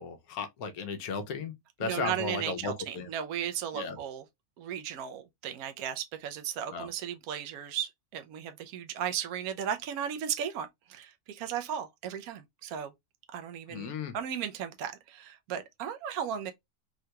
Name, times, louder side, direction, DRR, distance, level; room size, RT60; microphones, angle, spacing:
voice 1, 0.0-1.5 1.8-3.1 3.7-4.0 6.7-6.9 13.7-14.1, left 5 dB, 75° left, 1.1 m, -35 dB
voice 2, 1.8-4.2 4.6-12.9 13.3-16.5, right 9 dB, 75° right, 1.1 m, -36 dB
3.7 x 2.2 x 2.8 m
omnidirectional pair, 1.6 m